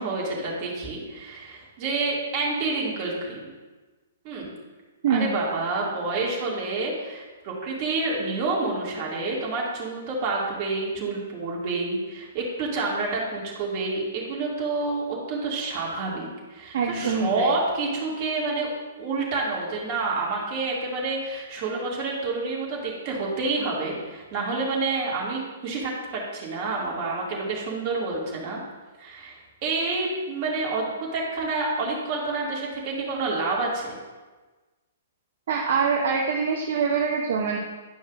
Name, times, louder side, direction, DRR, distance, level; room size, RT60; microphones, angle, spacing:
voice 1, 0.0-3.5 4.2-4.5 5.1-18.7 19.0-28.6 29.0-34.0, right 3 dB, 40° right, -3 dB, 2.2 m, -28 dB
voice 2, 16.7-17.5 35.5-37.6, right 5 dB, 55° right, 1 dB, 0.8 m, -24 dB
11.0 x 5.4 x 2.5 m, 1.3 s
figure-of-eight pair, 120°, 0 cm